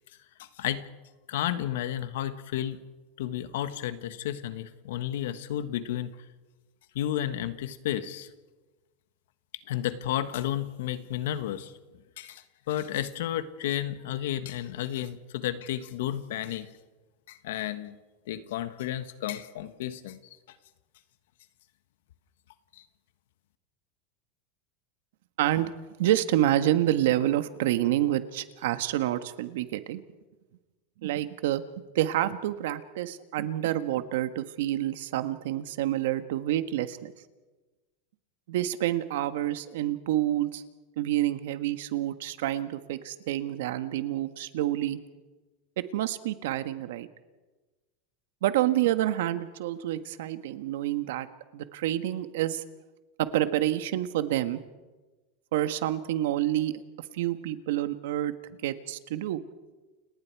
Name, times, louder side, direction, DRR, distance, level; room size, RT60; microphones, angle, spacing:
voice 1, 0.4-0.8 1.3-2.8 3.2-6.1 6.9-8.3 9.7-11.7 12.2-16.7 17.3-18.0 18.3-20.2 22.8-22.9, left 11 dB, 80° left, 11 dB, 1.5 m, -32 dB
voice 2, 25.4-25.7 26.0-30.0 31.0-31.6 31.9-37.1 38.5-40.6 41.0-45.0 45.8-47.1 48.4-51.3 51.5-52.6 53.2-54.6 55.5-58.3 58.6-59.4, right 13 dB, 75° right, 11 dB, 1.5 m, -28 dB
30.0 x 18.5 x 4.8 m, 1.2 s
supercardioid pair, 150°, 0 cm